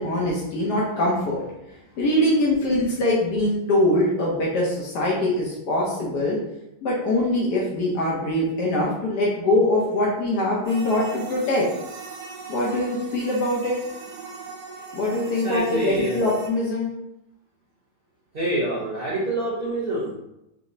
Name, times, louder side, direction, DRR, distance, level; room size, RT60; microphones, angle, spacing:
voice 1, 0.0-1.4 2.0-6.4 6.8-11.7 12.5-13.8 14.9-16.9, left 1 dB, 80° left, -4 dB, 1.4 m, -23 dB
sound 1, 10.6-16.5, right 5 dB, 85° right, 1.4 m, -39 dB
voice 2, 15.4-16.1 18.3-20.1, right 1 dB, 50° right, -4 dB, 0.8 m, -26 dB
5.0 x 2.1 x 2.6 m, 0.86 s
omnidirectional pair, 1.7 m